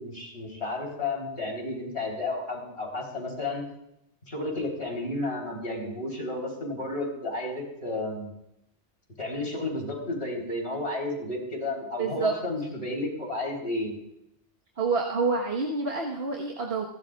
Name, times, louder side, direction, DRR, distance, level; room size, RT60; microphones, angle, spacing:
voice 1, 0.0-3.6 4.3-8.3 9.2-13.9, left 2 dB, 60° left, -1 dB, 4.3 m, -32 dB
voice 2, 12.0-12.3 14.8-16.9, right 4 dB, 60° right, -1 dB, 1.7 m, -28 dB
28.5 x 12.5 x 2.5 m, 0.81 s
omnidirectional pair, 1.2 m